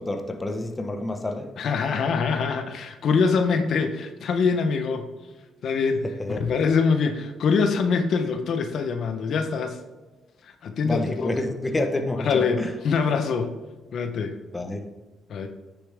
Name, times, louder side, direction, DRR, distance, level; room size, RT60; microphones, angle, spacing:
voice 1, 0.0-1.5 6.3-6.4 10.8-12.7 14.5-14.9, left 2 dB, 20° left, 1.2 m, -28 dB
voice 2, 1.6-5.1 5.6-6.1 6.4-9.8 10.4-11.3 12.2-13.6 13.9-14.4 15.3-15.5, left 5 dB, 65° left, 1.0 m, -24 dB
9.5 x 7.0 x 3.6 m
cardioid pair, 90°, 0 cm